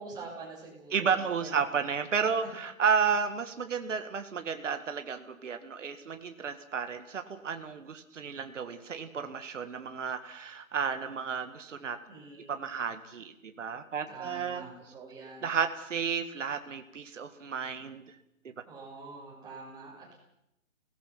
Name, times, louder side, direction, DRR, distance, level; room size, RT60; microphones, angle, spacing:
voice 1, 0.0-1.7 12.1-12.7 14.1-15.6 18.7-20.2, right 3 dB, 10° right, -4 dB, 6.7 m, -46 dB
voice 2, 0.9-12.0 12.5-14.7 15.4-18.0, right 6 dB, 65° right, 8 dB, 1.9 m, -32 dB
29.5 x 19.0 x 5.9 m, 0.85 s
hypercardioid pair, 150°, 41 cm